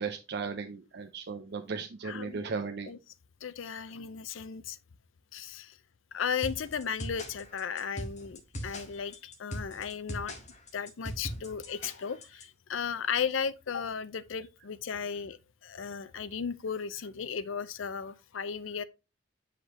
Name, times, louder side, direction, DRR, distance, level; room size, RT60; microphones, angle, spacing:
voice 1, 0.0-2.9 11.7-11.8, right 5 dB, 55° right, 0.5 m, -36 dB
voice 2, 2.0-2.4 2.9-3.0 3.4-4.8 5.3-5.8 6.1-10.3 10.7-18.8, left 6 dB, 75° left, 0.5 m, -35 dB
sound 1, 6.4-12.4, equal, 40° left, 1.7 m, -40 dB
7.7 x 5.0 x 3.1 m
head